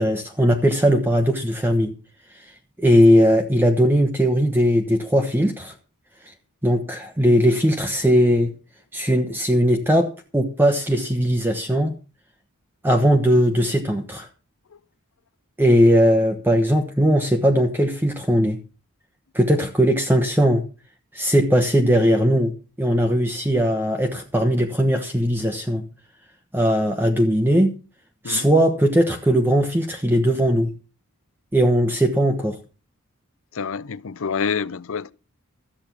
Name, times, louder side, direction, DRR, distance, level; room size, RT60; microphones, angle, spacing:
voice 1, 0.0-1.9 2.4-2.5 2.8-5.7 6.6-8.5 8.9-11.9 12.8-14.3 15.6-18.6 19.3-20.6 21.1-22.5 22.8-25.8 26.5-27.7 28.2-30.7 31.5-32.6, equal, 10° right, 1.1 m, -19 dB
voice 2, 33.5-35.1, left 6 dB, 65° left, 0.6 m, -27 dB
13.5 x 8.6 x 6.0 m
head